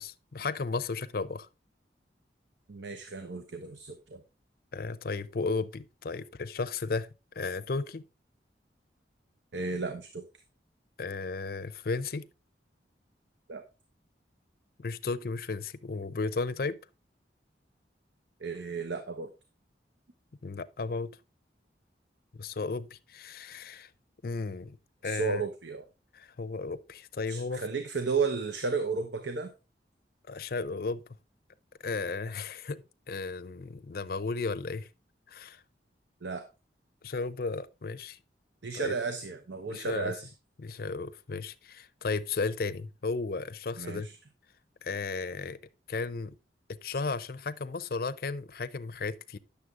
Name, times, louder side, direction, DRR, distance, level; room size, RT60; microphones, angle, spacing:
voice 1, 0.0-1.5 4.7-7.1 7.4-8.0 11.0-12.3 14.8-16.8 20.4-21.2 22.3-23.9 24.2-24.8 25.0-25.4 26.1-27.6 30.3-31.0 31.8-34.9 35.3-35.6 37.0-38.2 38.7-38.9 39.7-40.1 40.6-44.1 44.8-45.6 45.9-46.3 46.7-49.4, left 4 dB, 55° left, 0.5 m, -34 dB
voice 2, 2.7-4.2 9.5-10.2 13.5-13.6 18.4-19.3 25.0-25.8 27.3-29.5 36.2-36.5 38.6-40.3 43.8-44.2, right 4 dB, 85° right, 0.8 m, -33 dB
9.6 x 6.9 x 3.6 m
head